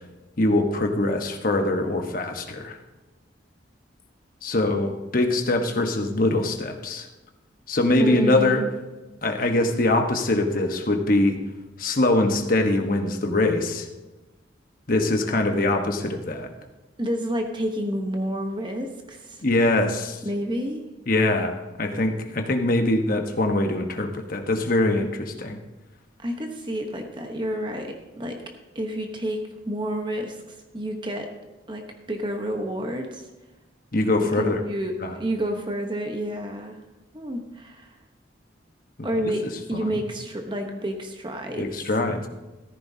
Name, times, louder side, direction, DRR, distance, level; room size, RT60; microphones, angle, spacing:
voice 1, 0.4-2.8 4.4-7.1 7.7-8.6 9.2-11.4 11.8-13.9 14.9-16.5 19.4-20.2 21.1-25.6 33.9-34.6 35.0-35.1 39.0-39.3 39.7-40.0 41.6-42.3, left 2 dB, 50° left, 5 dB, 1.2 m, -23 dB
voice 2, 8.0-8.7 17.0-19.4 20.2-20.9 26.2-28.4 28.7-31.3 31.7-33.3 34.6-36.8 37.1-38.0 39.0-41.7, equal, 25° right, 3 dB, 1.0 m, -29 dB
14.5 x 13.5 x 2.8 m, 1.1 s
head